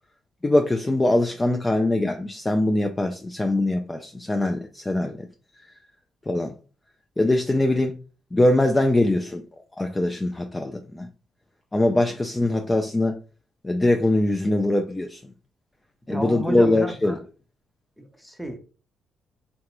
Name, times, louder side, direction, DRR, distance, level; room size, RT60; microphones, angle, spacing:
voice 1, 0.4-5.3 6.3-6.5 7.2-8.0 8.3-9.4 9.8-11.1 11.7-13.2 13.6-15.2 16.1-17.2, left 1 dB, 20° left, 0.4 m, -22 dB
voice 2, 16.1-17.2 18.0-18.6, right 1 dB, ahead, 0.8 m, -32 dB
3.9 x 2.2 x 2.9 m
cardioid pair, 90°, 0 cm